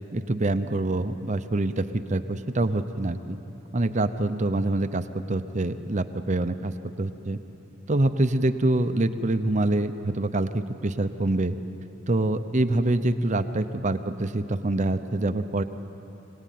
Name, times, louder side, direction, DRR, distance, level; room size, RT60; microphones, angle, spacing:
voice 1, 0.1-3.4 3.7-6.7 7.0-7.4 7.9-11.6 12.1-15.6, right 2 dB, 35° right, 9 dB, 0.7 m, -25 dB
25.0 x 18.5 x 9.3 m, 3.0 s
head